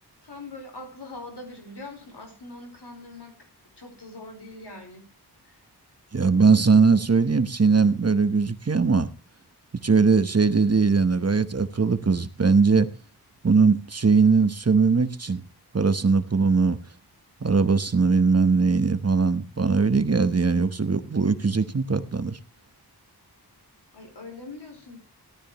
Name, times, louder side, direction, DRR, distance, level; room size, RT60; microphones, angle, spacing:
voice 1, 0.2-3.3 3.8-5.0 5.4-5.6 23.9-25.0, left 2 dB, 85° left, 3 dB, 4.5 m, -42 dB
voice 2, 6.1-9.1 9.8-12.9 13.4-15.4 15.7-16.8 17.4-22.4, right 4 dB, 40° right, 11 dB, 1.0 m, -20 dB
17.5 x 12.5 x 3.0 m, 0.29 s
wide cardioid pair, 70°, 39 cm